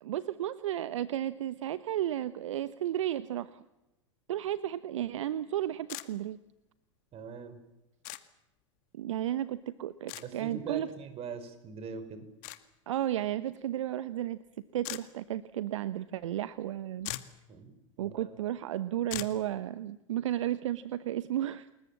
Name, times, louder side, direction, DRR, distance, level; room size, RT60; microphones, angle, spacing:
voice 1, 0.0-3.6 4.3-6.4 8.9-10.9 12.9-14.4 14.7-17.1 18.0-21.7, right 12 dB, 70° right, 15 dB, 1.0 m, -33 dB
sound 1, 5.9-6.1 8.0-8.2 10.1-10.3 12.4-12.6 14.8-15.0 16.7-16.8 17.0-17.4 19.1-19.4, left 19 dB, 50° left, 2.0 m, -39 dB
voice 2, 7.1-7.6 10.1-12.2 17.5-18.3, right 6 dB, 35° right, 11 dB, 5.3 m, -42 dB
29.5 x 21.5 x 7.5 m, 0.94 s
hypercardioid pair, 90°, 17 cm